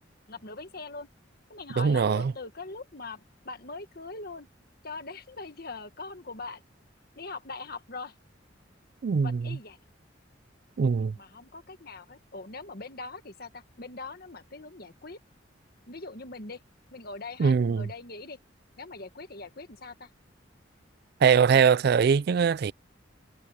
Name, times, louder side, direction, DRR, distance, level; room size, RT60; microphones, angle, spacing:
voice 1, 0.3-1.1 1.5-4.5 4.8-6.6 7.1-8.1 9.2-9.8 11.2-15.2 15.9-16.6 16.9-18.4 18.8-20.1, left 3 dB, 50° left, 1.6 m, -41 dB
voice 2, 1.8-2.3 9.0-9.6 10.8-11.2 17.4-17.9 21.2-22.7, right 6 dB, 55° right, 0.3 m, -22 dB
head